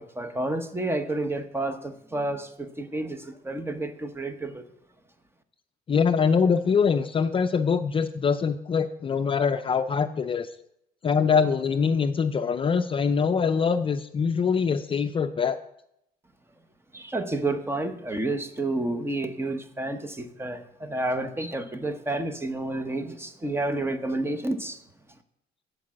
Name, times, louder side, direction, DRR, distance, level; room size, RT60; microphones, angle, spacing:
voice 1, 0.0-3.2 3.4-4.6 16.9-24.8, right 2 dB, 15° right, 9 dB, 0.9 m, -30 dB
voice 2, 5.9-10.5 11.0-15.6, left 6 dB, 30° left, 9 dB, 0.5 m, -23 dB
10.0 x 4.7 x 7.3 m, 0.77 s
cardioid pair, 110°, 17 cm